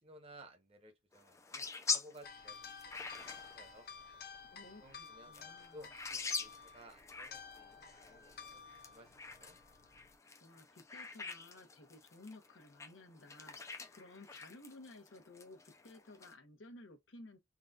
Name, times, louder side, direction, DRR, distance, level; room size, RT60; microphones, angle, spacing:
voice 1, 0.0-3.2 3.5-3.9 4.8-8.6 8.9-9.6, equal, 30° right, 0.9 m, -58 dB
sound 1, 1.1-16.3, left 5 dB, 15° left, 0.4 m, -45 dB
sound 2, 2.2-10.1, left 6 dB, 50° left, 0.7 m, -53 dB
voice 2, 4.5-5.9 10.4-17.4, left 2 dB, 85° left, 0.9 m, -56 dB
3.8 x 2.3 x 2.4 m
head